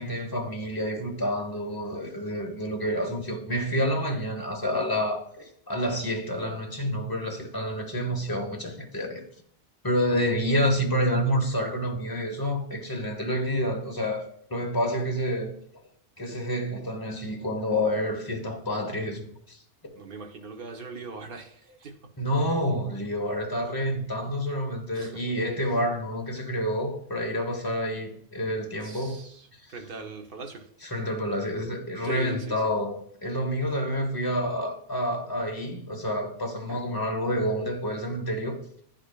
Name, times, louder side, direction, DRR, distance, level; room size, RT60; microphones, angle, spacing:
voice 1, 0.0-9.2 9.8-15.5 16.2-19.6 22.2-29.2 30.9-38.8, equal, 20° left, 1.0 m, -28 dB
voice 2, 19.9-22.0 24.9-25.2 28.8-30.7 32.0-32.7 36.7-36.8, right 4 dB, 60° right, 1.0 m, -40 dB
10.0 x 5.1 x 2.3 m
omnidirectional pair, 1.1 m